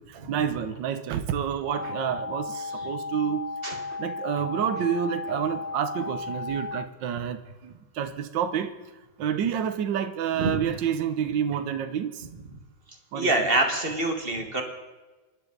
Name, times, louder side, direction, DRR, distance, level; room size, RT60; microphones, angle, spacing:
voice 1, 0.1-3.4 3.9-8.7 9.2-12.2 13.1-13.3, right 8 dB, 70° right, 9 dB, 1.6 m, -29 dB
sound 1, 1.7-6.9, left 3 dB, 50° left, 0.5 m, -35 dB
voice 2, 10.4-10.7 13.1-14.6, right 2 dB, 30° right, 3 dB, 2.0 m, -26 dB
27.0 x 12.0 x 4.0 m, 1.2 s
omnidirectional pair, 2.1 m